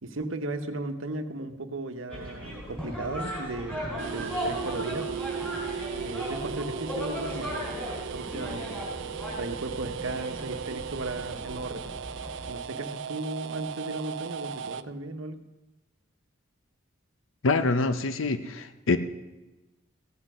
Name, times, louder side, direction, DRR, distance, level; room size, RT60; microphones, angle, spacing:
voice 1, 0.0-5.1 6.0-7.6 8.1-8.8 9.4-11.9 12.5-15.4, right 2 dB, 80° right, 7 dB, 1.1 m, -36 dB
sound 1, 2.1-12.5, equal, 5° left, 4.7 m, -37 dB
sound 2, 4.0-14.8, right 7 dB, 60° right, 0.4 m, -37 dB
voice 2, 17.4-19.0, left 3 dB, 80° left, 10 dB, 0.7 m, -25 dB
16.0 x 7.8 x 6.1 m, 1.1 s
head